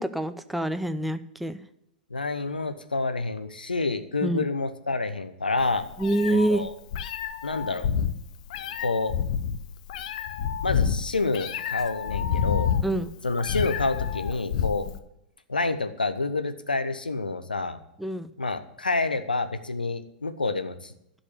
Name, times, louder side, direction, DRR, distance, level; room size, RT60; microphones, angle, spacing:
voice 1, 0.0-1.6 4.2-4.5 6.0-6.6 12.8-13.1 18.0-18.3, right 1 dB, ahead, 10 dB, 0.6 m, -26 dB
voice 2, 2.1-5.8 6.5-6.7 7.4-7.9 8.8-9.2 10.6-12.7 13.2-14.9 15.5-17.8 18.4-20.9, left 3 dB, 80° left, 10 dB, 0.9 m, -28 dB
Meow, 5.6-15.0, left 8 dB, 50° left, 0.7 m, -29 dB
11.5 x 5.4 x 8.6 m, 0.79 s
figure-of-eight pair, 100°, 5 cm